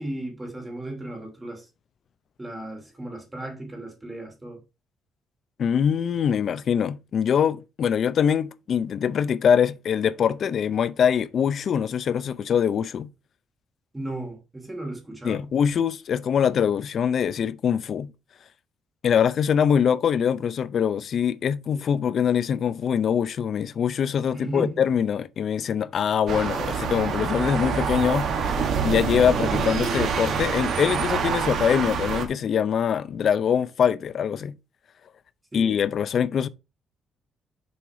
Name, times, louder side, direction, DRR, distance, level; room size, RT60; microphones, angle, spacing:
voice 1, 0.0-1.7 2.4-4.6 13.9-15.4 24.3-24.8 35.5-35.7, right 1 dB, 10° right, 2.7 m, -35 dB
voice 2, 5.6-13.1 15.2-18.1 19.0-34.5 35.5-36.5, left 8 dB, 45° left, 0.5 m, -23 dB
sound 1, 26.3-32.3, right 6 dB, 55° right, 1.7 m, -26 dB
7.0 x 4.7 x 4.8 m
cardioid pair, 155°, 0 cm